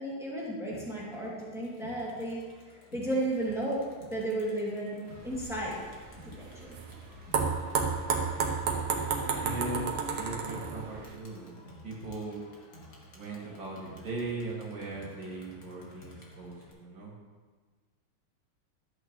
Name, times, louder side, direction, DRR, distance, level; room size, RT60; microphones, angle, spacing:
voice 1, 0.0-2.4 2.9-5.0 5.2-5.8 6.2-6.8, right 1 dB, ahead, -6 dB, 2.2 m, -33 dB
Crowd, 0.7-16.7, equal, 45° left, 1.8 m, -53 dB
sound 1, 5.1-11.1, right 5 dB, 85° right, 2.0 m, -32 dB
voice 2, 9.4-12.4 13.1-17.1, right 2 dB, 60° right, -3 dB, 2.6 m, -39 dB
13.5 x 8.1 x 3.1 m, 1.5 s
omnidirectional pair, 2.4 m